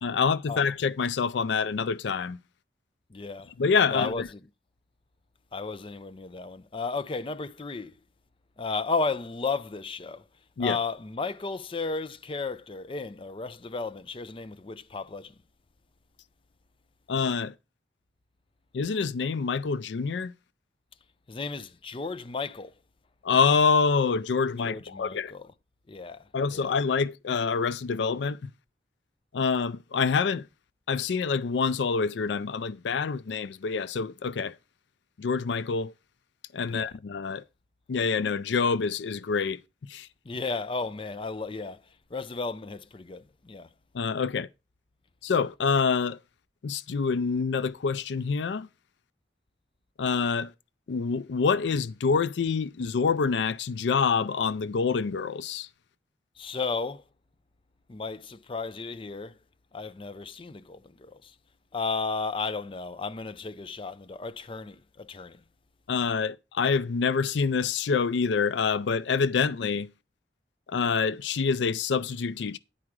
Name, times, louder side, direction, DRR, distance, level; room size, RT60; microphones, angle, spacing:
voice 1, 0.0-2.4 3.6-4.3 10.6-10.8 17.1-17.5 18.7-20.3 23.2-25.3 26.3-28.5 29.3-30.5 30.9-34.5 35.2-35.9 36.5-37.4 37.9-39.6 39.9-40.1 43.9-44.5 45.2-46.2 46.6-48.7 50.0-50.5 50.9-55.7 65.9-69.9 70.7-72.6, left 5 dB, 85° left, 0.4 m, -26 dB
voice 2, 3.1-3.5 3.9-4.2 5.5-7.9 8.6-10.2 10.6-15.3 21.3-22.7 24.6-25.5 25.9-26.8 36.7-36.9 40.3-41.8 42.1-43.7 56.4-57.0 57.9-59.4 59.7-61.3 61.7-65.4, left 4 dB, 30° left, 0.5 m, -34 dB
10.0 x 4.8 x 6.0 m
head